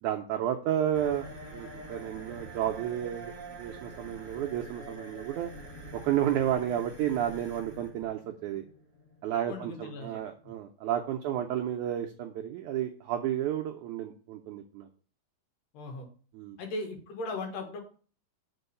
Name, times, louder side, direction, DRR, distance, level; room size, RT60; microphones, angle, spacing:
voice 1, 0.0-5.5 5.9-8.6 9.2-14.9 16.3-16.6, right 11 dB, 80° right, 3 dB, 1.7 m, -32 dB
sound 1, 0.9-10.5, right 1 dB, 40° right, 1.2 m, -46 dB
voice 2, 9.4-10.2 15.7-16.1 16.6-17.8, left 2 dB, 70° left, 3 dB, 3.1 m, -37 dB
7.0 x 4.5 x 6.7 m, 0.41 s
omnidirectional pair, 4.2 m